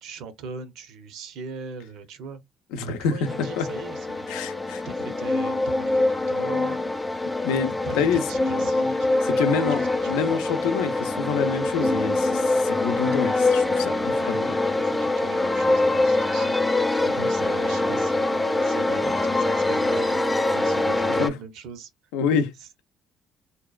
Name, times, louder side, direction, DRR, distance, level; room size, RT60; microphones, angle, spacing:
voice 1, 0.0-2.4 2.9-4.6 4.8-6.8 7.9-10.1 13.8-21.9 22.6-22.8, right 5 dB, 75° right, 0.6 m, -40 dB
voice 2, 2.7-3.7 4.3-4.8 7.4-8.2 9.2-14.6 21.2-21.3 22.1-22.5, left 6 dB, 90° left, 0.5 m, -27 dB
sound 1, 3.2-21.3, left 2 dB, 10° left, 0.5 m, -24 dB
2.8 x 2.2 x 2.3 m
supercardioid pair, 80°, 0 cm